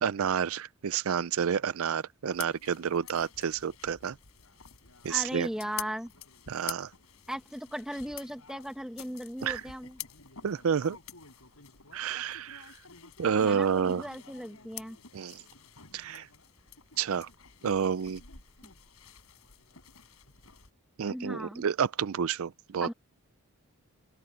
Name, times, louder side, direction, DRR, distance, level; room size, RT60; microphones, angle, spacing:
voice 1, 0.0-4.2 5.0-5.5 6.5-6.9 9.4-9.6 10.4-11.0 11.9-12.8 13.2-14.1 15.1-15.4 15.9-16.3 17.0-17.3 17.6-18.2 21.0-22.9, right 7 dB, 70° right, 0.4 m, -29 dB
sound 1, 2.3-20.7, left 9 dB, 80° left, 4.6 m, -48 dB
voice 2, 5.1-6.1 7.3-10.0 13.4-15.0 21.1-21.6 22.8-22.9, equal, 5° right, 1.9 m, -37 dB
head